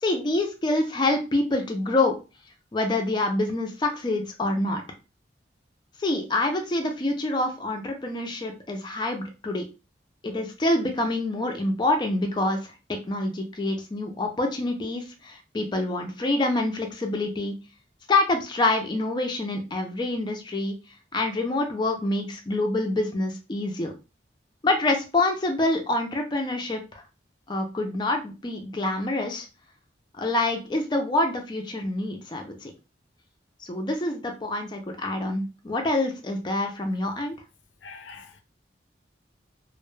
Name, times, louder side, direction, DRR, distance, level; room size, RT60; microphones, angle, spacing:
voice 1, 0.0-2.1 2.7-4.8 6.0-9.7 10.2-17.6 18.1-20.8 21.1-23.9 24.6-27.0 27.5-29.5 30.2-32.7 33.6-37.3, left 2 dB, 25° left, 0.4 m, -26 dB
voice 2, 37.8-38.4, left 4 dB, 90° left, 0.5 m, -44 dB
2.2 x 2.0 x 3.1 m
head